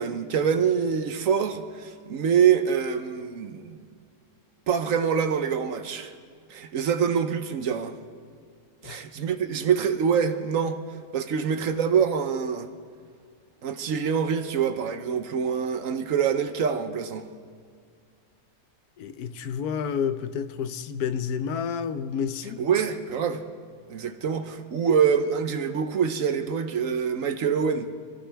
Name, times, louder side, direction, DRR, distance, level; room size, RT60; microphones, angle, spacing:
voice 1, 0.0-3.9 4.7-6.1 6.5-7.9 8.8-10.8 11.1-12.7 13.6-17.2 22.6-23.4 23.9-27.9, right 7 dB, 65° right, 1.1 m, -25 dB
voice 2, 19.0-22.6, left 7 dB, 85° left, 1.2 m, -30 dB
26.0 x 14.5 x 3.4 m
omnidirectional pair, 1.6 m